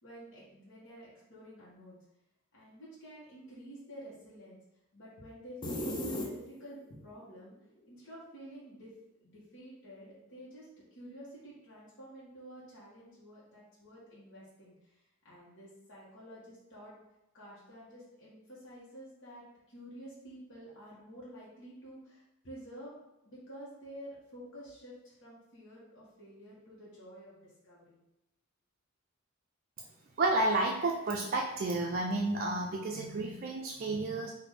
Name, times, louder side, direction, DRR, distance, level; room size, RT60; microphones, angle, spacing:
voice 1, 0.0-2.0 2.5-4.6 4.9-7.5 7.9-8.9 9.2-16.9 17.3-23.0 23.2-28.0, equal, 60° left, -8 dB, 1.4 m, -50 dB
sound 1, 5.6-6.9, left 1 dB, 20° left, 0.6 m, -36 dB
voice 2, 30.2-34.3, right 2 dB, 45° right, 0 dB, 0.4 m, -31 dB
4.0 x 2.7 x 4.8 m, 0.89 s
head